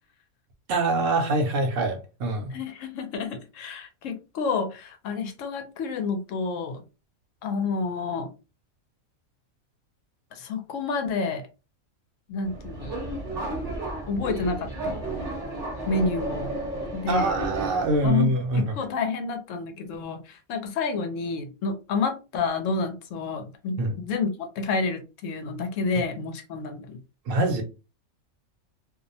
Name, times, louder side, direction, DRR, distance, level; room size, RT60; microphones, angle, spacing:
voice 1, 0.7-2.5 17.1-18.8 23.8-24.0 27.3-27.6, right 2 dB, 70° right, 0.9 m, -24 dB
voice 2, 2.5-6.8 7.4-8.3 10.3-11.4 12.3-12.9 14.1-14.9 15.9-16.5 16.9-17.4 18.0-27.0, left 4 dB, 70° left, 0.9 m, -29 dB
Subway metro underground, 12.4-18.1, right 1 dB, 35° right, 0.7 m, -33 dB
2.6 x 2.0 x 2.6 m
omnidirectional pair, 1.4 m